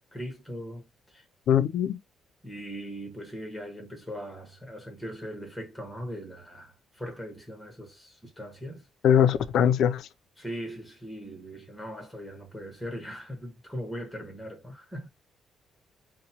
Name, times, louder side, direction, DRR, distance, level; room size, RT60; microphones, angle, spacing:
voice 1, 0.1-1.2 2.4-8.9 10.4-15.1, equal, 5° left, 1.1 m, -40 dB
voice 2, 1.5-2.0 9.0-10.1, left 9 dB, 70° left, 0.3 m, -21 dB
2.9 x 2.1 x 2.8 m
cardioid pair, 135°, 0 cm